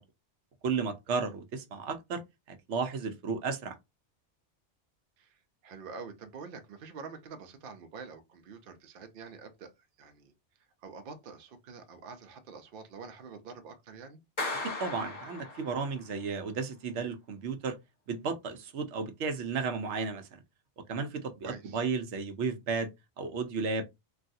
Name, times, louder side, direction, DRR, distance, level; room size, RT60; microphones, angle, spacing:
voice 1, 0.6-2.2 2.5-3.8 14.8-17.8 18.1-20.3 20.9-22.9 23.2-23.8, right 5 dB, 85° right, 0.9 m, -33 dB
voice 2, 5.2-9.7 10.0-10.3 10.8-14.2 21.4-21.8, right 5 dB, 60° right, 0.8 m, -46 dB
Clapping, 14.4-16.0, left 2 dB, 25° left, 1.2 m, -37 dB
3.2 x 2.3 x 2.6 m
omnidirectional pair, 1.2 m